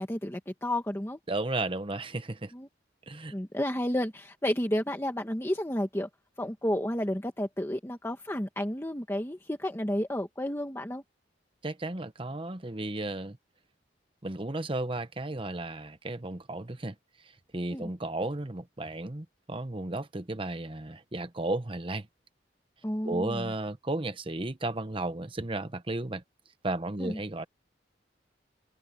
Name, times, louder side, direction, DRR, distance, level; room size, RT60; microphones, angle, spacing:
voice 1, 0.0-1.2 2.5-2.7 3.3-6.1 6.4-11.0 17.7-17.9 22.8-23.5 27.0-27.2, left 1 dB, 15° left, 1.4 m, -31 dB
voice 2, 1.3-2.5 3.1-3.3 11.6-13.4 14.2-16.9 17.5-22.1 23.0-26.2 26.6-27.5, right 2 dB, 30° right, 1.1 m, -34 dB
open air
head